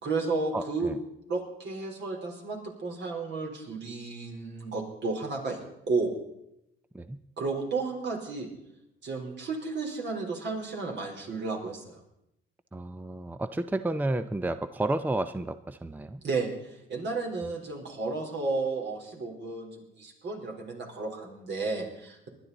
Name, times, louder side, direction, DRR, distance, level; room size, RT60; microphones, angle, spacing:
voice 1, 0.0-1.0 1.3-5.6 5.9-6.2 7.4-8.5 9.0-12.0 16.2-22.3, right 3 dB, 65° right, 1 dB, 3.9 m, -33 dB
voice 2, 0.5-1.0 6.9-7.2 12.7-16.2, right 2 dB, 10° right, 11 dB, 0.5 m, -31 dB
20.0 x 11.5 x 4.0 m, 0.81 s
cardioid pair, 90°, 20 cm